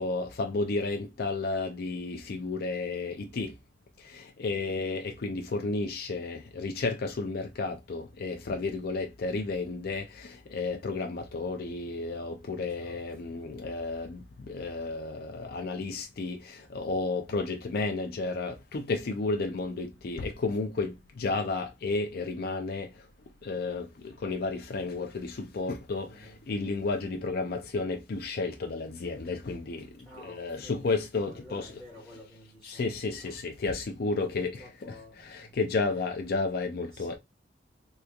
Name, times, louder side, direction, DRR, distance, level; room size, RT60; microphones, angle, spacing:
voice 1, 0.0-3.5 4.0-22.9 23.4-29.9 30.2-31.7 32.6-34.5 34.9-37.2, left 3 dB, 55° left, 0.4 m, -32 dB
voice 2, 4.6-5.0 12.7-13.5 25.9-26.5 30.0-33.4 34.1-35.6 35.9-36.0 36.9-37.2, equal, ahead, 1.2 m, -52 dB
3.4 x 3.0 x 2.2 m
head